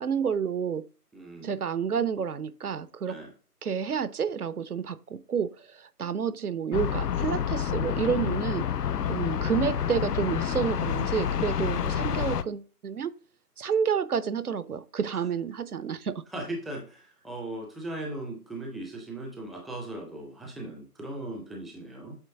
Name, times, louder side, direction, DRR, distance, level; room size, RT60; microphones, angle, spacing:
voice 1, 0.0-0.9 1.4-3.2 3.6-8.7 9.1-13.1 13.6-16.2, right 7 dB, 70° right, 0.7 m, -29 dB
voice 2, 1.1-1.5 3.1-3.3 9.3-9.5 16.3-22.2, right 1 dB, ahead, 0.5 m, -38 dB
sound 1, 6.7-12.4, left 9 dB, 75° left, 0.6 m, -28 dB
8.2 x 3.4 x 3.5 m
figure-of-eight pair, 165°, 47 cm